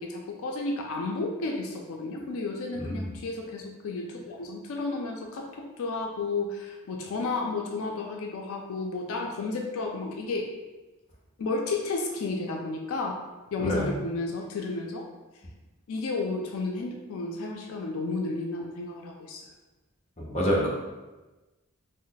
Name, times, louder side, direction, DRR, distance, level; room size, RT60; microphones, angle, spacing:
voice 1, 0.0-10.5 11.4-13.2 13.5-15.0 15.9-19.4, left 3 dB, 80° left, 1 dB, 0.4 m, -32 dB
voice 2, 13.6-13.9 20.2-20.7, equal, 30° left, -4 dB, 0.6 m, -27 dB
3.0 x 2.0 x 3.8 m, 1.1 s
head